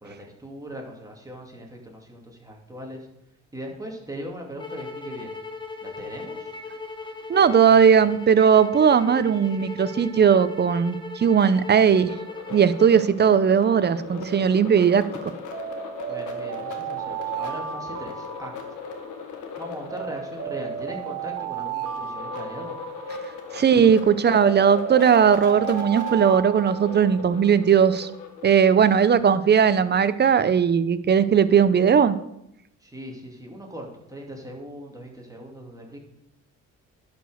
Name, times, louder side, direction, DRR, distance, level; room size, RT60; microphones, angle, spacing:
voice 1, 0.0-3.1 3.5-5.3 5.8-6.5 16.1-18.5 19.6-22.8 32.8-36.0, equal, 10° right, 0 dB, 2.5 m, -39 dB
sound 1, 4.6-13.0, left 4 dB, 15° left, 1.1 m, -38 dB
voice 2, 7.3-12.1 12.5-15.1 23.5-28.1 28.4-32.2, right 7 dB, 35° right, 14 dB, 0.7 m, -18 dB
sound 2, 12.1-28.8, left 5 dB, 90° left, 1.5 m, -38 dB
Alarm, 15.5-19.2 19.9-23.6 24.3-27.5, right 9 dB, 50° right, 1.3 m, -34 dB
11.0 x 5.2 x 6.4 m, 0.81 s
cardioid pair, 90°, 30 cm